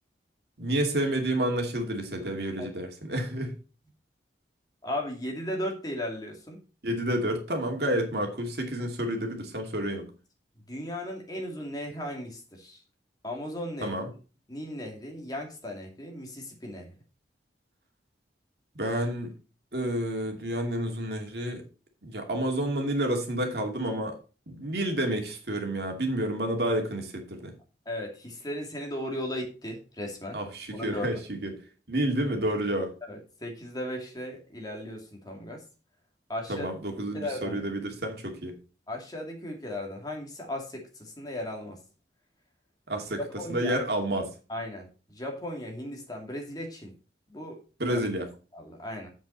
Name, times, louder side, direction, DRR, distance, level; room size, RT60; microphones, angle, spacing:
voice 1, 0.6-3.5 6.8-10.1 13.8-14.1 18.8-19.3 19.7-21.6 22.0-24.1 24.5-27.5 30.3-31.5 31.9-32.9 36.5-38.6 42.9-43.2 43.5-44.3 47.8-48.3, right 1 dB, 65° right, 3 dB, 2.5 m, -29 dB
voice 2, 4.8-6.6 10.7-12.8 13.2-14.0 14.5-16.9 27.9-30.4 30.7-31.2 33.0-35.6 36.3-36.7 37.1-37.6 38.9-41.8 43.2-43.8 44.5-46.9 47.3-48.0 48.5-49.1, left 1 dB, 20° left, 1 dB, 2.5 m, -36 dB
8.6 x 7.8 x 4.2 m, 0.34 s
head